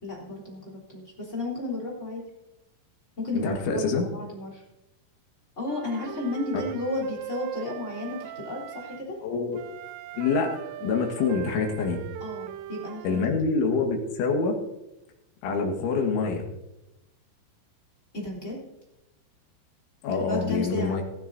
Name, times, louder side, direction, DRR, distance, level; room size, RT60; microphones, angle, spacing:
voice 1, 0.0-2.2 3.2-4.6 5.6-9.2 12.2-13.3 18.1-18.6 20.1-21.0, left 2 dB, 15° left, -4 dB, 3.3 m, -33 dB
voice 2, 3.3-4.1 9.2-9.6 10.1-10.5 10.8-12.0 13.0-14.6 15.4-16.4 20.0-21.0, left 4 dB, 75° left, 2 dB, 4.0 m, -26 dB
Wind instrument woodwind instrument, 5.7-9.0 9.5-13.3, right 12 dB, 90° right, 2.4 m, -39 dB
16.0 x 15.0 x 2.7 m, 0.94 s
omnidirectional pair, 5.6 m